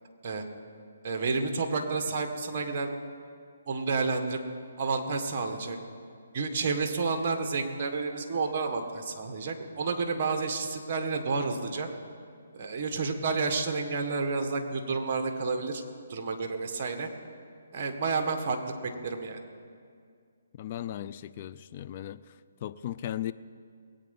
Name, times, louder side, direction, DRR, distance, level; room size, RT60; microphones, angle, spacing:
voice 1, 1.0-2.9 3.7-4.4 4.8-5.8 6.3-11.9 12.5-15.8 16.1-17.1 17.7-18.6 18.8-19.4, right 4 dB, 40° right, 5 dB, 1.7 m, -30 dB
voice 2, 20.5-22.2 22.6-23.3, left 12 dB, 35° left, 13 dB, 0.5 m, -36 dB
21.5 x 8.8 x 5.5 m, 2.2 s
hypercardioid pair, 155°, 0 cm